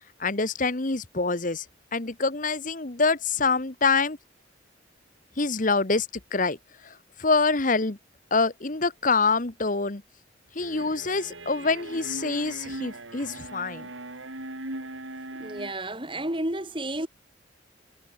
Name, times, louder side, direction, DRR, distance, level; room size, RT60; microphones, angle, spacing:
voice 1, 0.2-1.6 1.9-4.2 5.4-6.1 6.3-6.6 7.2-8.0 8.3-10.0 10.5-13.9, left 4 dB, 40° left, 1.2 m, -25 dB
sound 1, 10.6-15.7, right 2 dB, 75° right, 5.0 m, -39 dB
voice 2, 15.4-17.1, right 1 dB, 25° right, 3.4 m, -31 dB
head